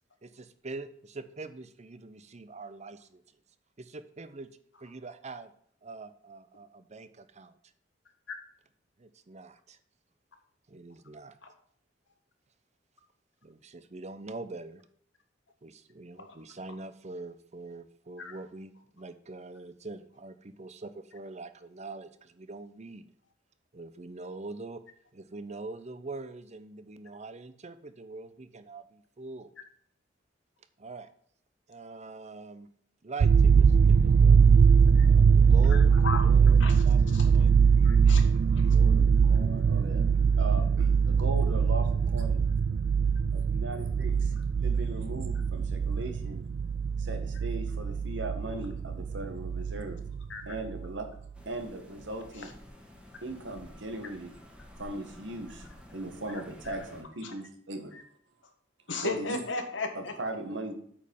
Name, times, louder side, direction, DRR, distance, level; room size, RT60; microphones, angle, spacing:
voice 1, 0.2-3.2 3.8-4.5 4.8-5.5 5.8-7.5 9.0-9.8 10.7-11.4 13.4-14.8 15.6-23.0 23.7-24.8 25.1-29.5 30.8-31.1 31.7-32.7 33.0-34.4 35.0-36.0 36.2-37.6, right 3 dB, 40° right, 12 dB, 0.7 m, -43 dB
sound 1, 33.2-50.3 50.6-50.9, right 6 dB, 60° right, 0.3 m, -22 dB
voice 2, 35.7-36.2 36.6-36.8 37.1-37.3 37.7-38.2 38.5-38.7 50.3-50.4 56.7-56.8 57.2-57.3 58.9-60.1, left 3 dB, 80° left, 5 dB, 1.7 m, -35 dB
voice 3, 38.5-40.1 40.4-42.4 43.3-46.4 47.0-50.0 50.4-51.1 51.4-52.5 53.2-54.3 54.8-57.9 59.0-59.4 59.9-60.7, right 2 dB, 80° right, 5 dB, 1.7 m, -39 dB
sound 2, 51.3-57.0, equal, 5° right, 1.5 m, -51 dB
8.6 x 5.3 x 5.5 m, 0.62 s
head